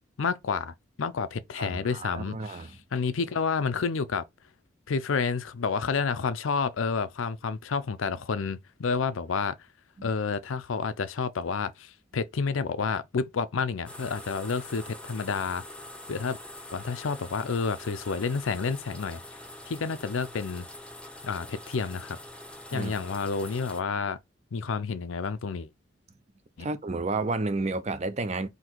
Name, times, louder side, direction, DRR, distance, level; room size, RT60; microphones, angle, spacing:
voice 1, 0.2-4.2 4.9-9.6 10.0-15.6 16.1-16.4 16.7-19.2 19.7-20.7 21.2-22.2 22.7-24.2 24.5-25.7 26.6-26.7, left 5 dB, 85° left, 0.5 m, -30 dB
voice 2, 1.6-2.7 10.0-10.1 22.7-22.9 26.6-28.5, right 3 dB, 35° right, 0.5 m, -31 dB
sound 1, 13.9-23.8, left 1 dB, 5° left, 0.7 m, -44 dB
4.0 x 2.8 x 4.4 m
head